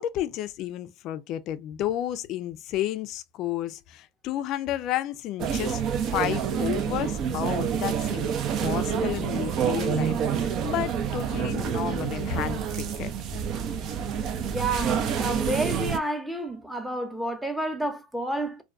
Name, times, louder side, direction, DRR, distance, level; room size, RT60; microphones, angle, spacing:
voice 1, 0.0-8.3 8.6-13.1, left 12 dB, 55° left, 0.3 m, -32 dB
sound 1, 5.4-16.0, right 7 dB, 50° right, 0.5 m, -28 dB
voice 2, 14.5-18.6, right 1 dB, ahead, 0.7 m, -30 dB
2.2 x 2.2 x 2.4 m
supercardioid pair, 100°, 0 cm